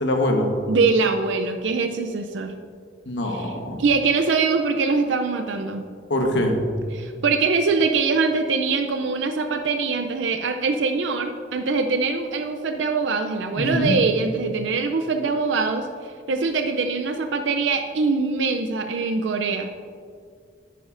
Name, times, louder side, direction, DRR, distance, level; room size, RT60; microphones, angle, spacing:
voice 1, 0.0-0.5 3.1-3.8 6.1-6.6 13.6-13.9, left 1 dB, 80° left, 3 dB, 1.2 m, -23 dB
voice 2, 0.7-2.5 3.2-5.9 6.9-19.7, right 4 dB, 85° right, 6 dB, 0.5 m, -23 dB
11.0 x 9.2 x 2.6 m, 2.2 s
head